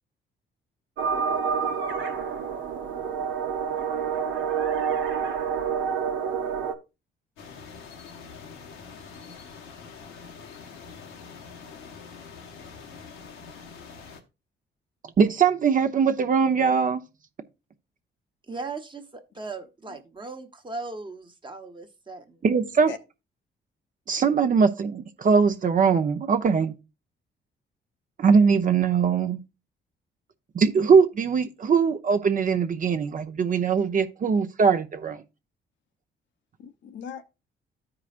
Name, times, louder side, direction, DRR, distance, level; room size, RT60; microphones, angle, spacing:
sound 1, 1.0-6.7, right 6 dB, 80° right, 1.1 m, -28 dB
sound 2, 7.4-14.2, left 5 dB, 85° left, 1.2 m, -44 dB
voice 1, 15.2-17.0 22.4-22.9 24.1-26.7 28.2-29.4 30.5-35.2, right 6 dB, 45° right, 0.8 m, -21 dB
voice 2, 18.5-22.4, right 3 dB, 25° right, 1.2 m, -38 dB
voice 3, 22.5-23.0 36.6-37.2, left 7 dB, 70° left, 0.9 m, -40 dB
14.0 x 4.9 x 2.5 m
cardioid pair, 90°, 20 cm